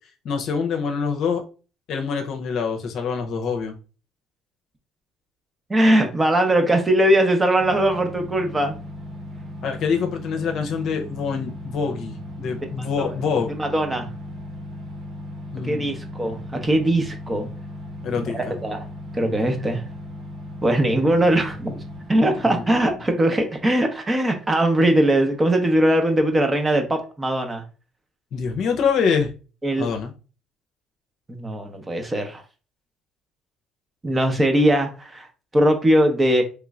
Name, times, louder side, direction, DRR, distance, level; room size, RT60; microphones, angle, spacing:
voice 1, 0.2-1.4 1.9-3.7 9.6-13.5 15.5-15.9 18.0-18.5 22.4-22.6 28.3-29.3 29.8-30.1, left 6 dB, 65° left, 4 dB, 0.6 m, -25 dB
voice 2, 5.7-8.8 13.0-13.1 13.6-14.1 15.6-17.5 18.3-18.8 19.1-19.8 20.6-21.7 22.1-27.6 29.6-29.9 31.3-32.4 34.0-35.3 35.5-36.4, right 1 dB, 20° right, 5 dB, 0.8 m, -20 dB
sound 1, 7.6-22.8, left 1 dB, 50° right, 1.1 m, -37 dB
3.2 x 3.0 x 2.4 m, 0.34 s
supercardioid pair, 90°, 0 cm